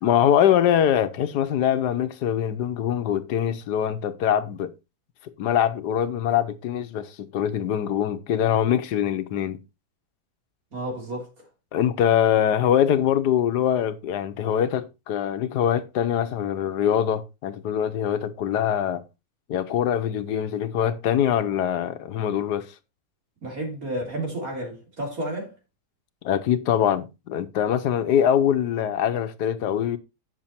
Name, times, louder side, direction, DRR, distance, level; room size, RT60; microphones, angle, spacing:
voice 1, 0.0-4.7 5.2-9.6 11.7-19.0 19.5-22.7 26.2-30.0, left 9 dB, 90° left, 1.4 m, -23 dB
voice 2, 10.7-11.5 23.4-25.5, right 1 dB, 60° right, 3.7 m, -31 dB
8.9 x 6.7 x 4.2 m
omnidirectional pair, 1.7 m